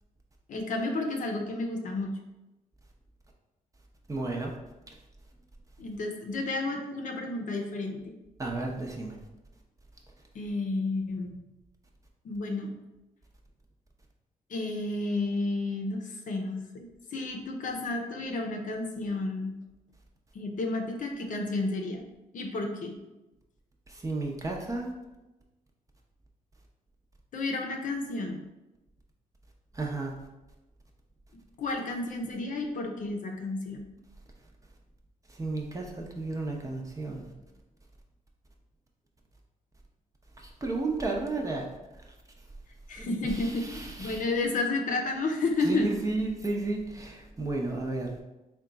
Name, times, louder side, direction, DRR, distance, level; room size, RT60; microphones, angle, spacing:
voice 1, 0.5-2.1 5.8-8.1 10.3-11.4 12.2-12.7 14.5-19.6 20.3-22.0 22.3-22.9 27.3-28.4 31.6-33.8 42.9-45.9, left 2 dB, 60° left, 2 dB, 0.7 m, -31 dB
voice 2, 4.1-4.5 8.4-9.2 23.9-24.9 29.7-30.1 35.3-37.3 40.4-41.7 43.0-44.2 45.6-48.2, right 2 dB, 20° right, 0 dB, 0.7 m, -33 dB
3.7 x 2.3 x 3.9 m, 1.0 s
cardioid pair, 90°, 15 cm